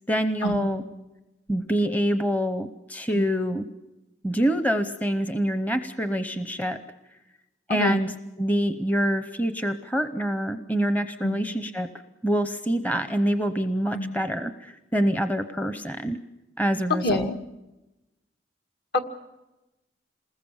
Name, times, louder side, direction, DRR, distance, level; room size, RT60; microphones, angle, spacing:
voice 1, 0.1-0.8 1.5-3.7 4.2-6.8 7.7-8.1 8.4-11.9 12.2-16.2 16.6-17.3, equal, 10° left, 9 dB, 0.8 m, -26 dB
voice 2, 7.7-8.0 11.2-11.4 13.9-14.1 17.0-17.4 18.9-19.0, left 1 dB, 60° left, 4 dB, 2.0 m, -26 dB
27.5 x 20.5 x 7.3 m, 1.0 s
head